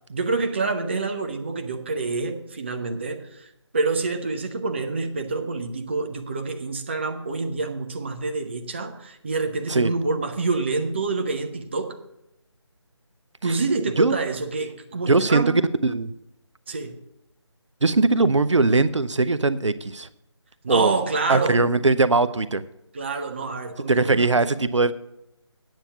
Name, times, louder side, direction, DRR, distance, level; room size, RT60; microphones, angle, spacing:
voice 1, 0.1-12.0 13.4-15.5 16.7-16.9 20.6-21.6 22.9-24.4, right 3 dB, 25° right, 6 dB, 0.6 m, -27 dB
voice 2, 15.1-15.4 15.8-16.1 17.8-20.1 20.7-20.9 21.3-22.6 23.9-24.9, right 3 dB, 75° right, 14 dB, 0.6 m, -20 dB
8.9 x 7.1 x 6.9 m, 0.86 s
figure-of-eight pair, 160°, 15 cm